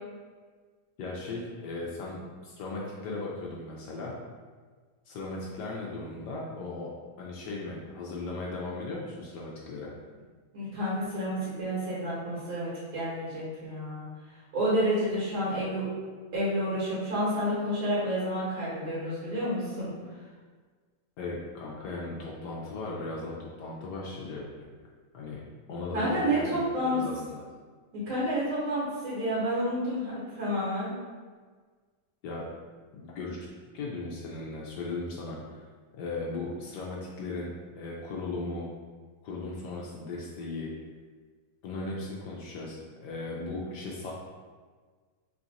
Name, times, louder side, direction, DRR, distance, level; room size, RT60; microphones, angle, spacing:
voice 1, 1.0-4.1 5.1-6.9 7.2-9.9 21.2-24.5 25.1-25.4 25.7-27.4 32.2-32.5 32.9-33.5 33.7-35.4 35.9-38.7 39.2-40.7 41.6-44.1, left 3 dB, 70° left, -4 dB, 1.0 m, -37 dB
voice 2, 10.5-14.1 14.5-15.9 16.3-19.9 25.9-27.0 27.9-30.9, equal, 75° right, -9 dB, 1.9 m, -29 dB
3.9 x 2.4 x 4.0 m, 1.5 s
omnidirectional pair, 2.3 m